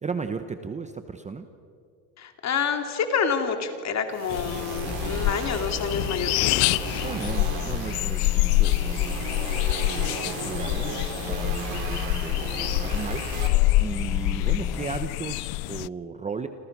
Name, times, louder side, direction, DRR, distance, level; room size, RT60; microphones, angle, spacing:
voice 1, 0.0-1.5 7.0-16.5, right 5 dB, 15° right, 8 dB, 0.9 m, -36 dB
voice 2, 2.2-6.5, left 6 dB, 35° left, 6 dB, 2.8 m, -28 dB
sound 1, 4.1-13.5, right 6 dB, 65° right, 4.1 m, -36 dB
sound 2, 4.3-15.9, left 20 dB, 60° left, 0.5 m, -26 dB
sound 3, 4.9-14.9, left 4 dB, 5° left, 0.5 m, -39 dB
28.5 x 26.5 x 6.1 m, 2.4 s
cardioid pair, 140°, 47 cm